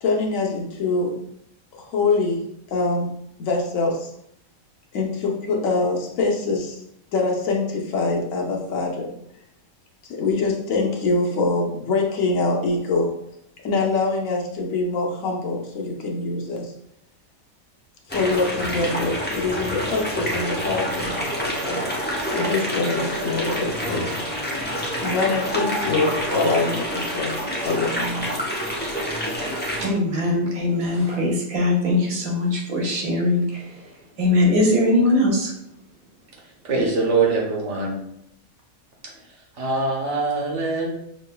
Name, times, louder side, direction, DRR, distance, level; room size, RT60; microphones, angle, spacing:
voice 1, 0.0-1.1 1.8-2.4 2.7-3.1 3.4-4.1 4.9-6.8 7.1-9.1 10.0-13.1 13.6-16.7 18.1-21.8 22.3-24.1 25.0-27.4 27.6-28.4, left 3 dB, 70° left, 1.1 m, -24 dB
sound 1, 18.1-29.9, equal, 15° left, 0.4 m, -27 dB
voice 2, 29.8-33.9 34.2-35.5, left 2 dB, 80° right, 1.5 m, -21 dB
voice 3, 36.6-38.0 39.6-40.9, right 3 dB, 60° right, 1.2 m, -23 dB
5.9 x 3.2 x 2.2 m
omnidirectional pair, 1.5 m